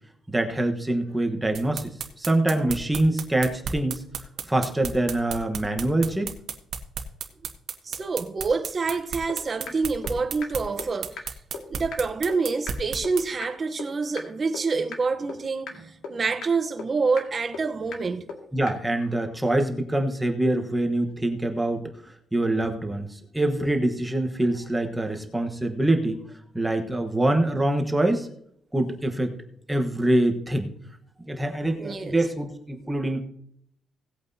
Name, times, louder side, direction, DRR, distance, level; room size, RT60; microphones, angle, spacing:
voice 1, 0.3-1.9 2.2-4.0 4.5-6.3 18.5-26.2 26.5-28.3 28.7-29.3 29.7-30.7 31.3-33.2, right 1 dB, 10° right, 1.1 m, -25 dB
sound 1, 1.5-13.2, right 7 dB, 60° right, 1.3 m, -33 dB
voice 2, 7.8-11.2 11.7-18.3 31.8-32.2, right 4 dB, 30° right, 0.9 m, -27 dB
sound 2, 8.9-9.0 9.3-9.4 9.7-9.8 10.0-10.1 10.4-10.5 10.8-10.9 11.2-11.3 11.5-11.6 11.9-12.0 12.3-12.4 12.7-12.8 13.0-13.1 13.4-13.5 13.8-13.9 14.2-14.3 14.5-14.6 14.9-15.0 15.3-15.4 15.7-15.8 16.0-16.1 16.4-16.5 16.8-16.9 17.2-17.3 17.5-17.6 17.9-18.0 18.3-18.4 18.7-18.8, left 5 dB, 90° left, 2.1 m, -35 dB
18.0 x 8.6 x 2.8 m
cardioid pair, 155°, 0 cm